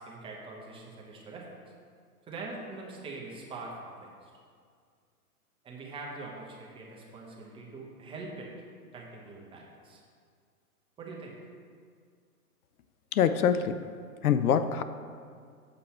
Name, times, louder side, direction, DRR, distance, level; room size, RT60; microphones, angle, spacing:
voice 1, 0.0-1.5 2.2-4.3 5.6-8.5 8.9-10.0 11.0-11.4, right 3 dB, 10° right, -3 dB, 0.8 m, -43 dB
voice 2, 13.1-13.9 14.2-14.8, left 8 dB, 75° left, 11 dB, 0.5 m, -25 dB
7.1 x 5.5 x 4.3 m, 2.1 s
hypercardioid pair, 130°, 45 cm